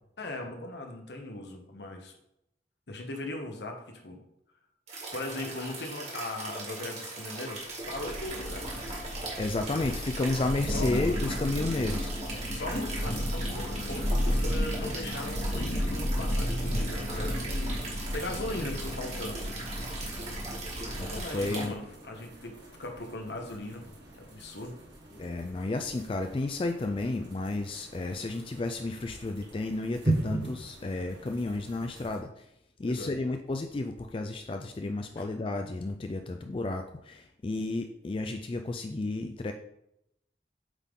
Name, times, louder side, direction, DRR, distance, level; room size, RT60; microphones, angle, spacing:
voice 1, 0.2-2.1 2.9-4.2 5.1-8.7 10.7-10.9 12.5-17.5 18.1-19.5 21.1-24.7 32.8-33.1 35.2-35.3, left 2 dB, 70° left, 3 dB, 1.1 m, -39 dB
sound 1, 4.9-21.7, right 2 dB, 35° right, 1.7 m, -40 dB
Thunder, 7.8-21.5, equal, 50° left, 1.3 m, -33 dB
voice 2, 9.4-12.1 21.0-21.7 25.1-32.5 32.8-39.5, left 2 dB, 30° left, 5 dB, 0.3 m, -32 dB
sound 2, 16.3-32.2, right 2 dB, 80° right, 1.7 m, -40 dB
8.1 x 3.8 x 3.7 m, 0.81 s
head